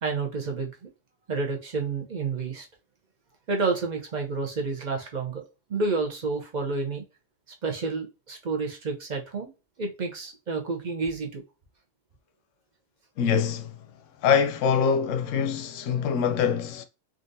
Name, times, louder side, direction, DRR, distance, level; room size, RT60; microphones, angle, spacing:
voice 1, 0.0-0.9 1.3-2.7 3.5-7.0 7.6-9.5 9.8-11.4, right 4 dB, 45° right, 0.6 m, -30 dB
voice 2, 13.2-13.8 14.2-16.8, left 7 dB, 90° left, 0.9 m, -24 dB
3.7 x 2.4 x 2.6 m
omnidirectional pair, 1.3 m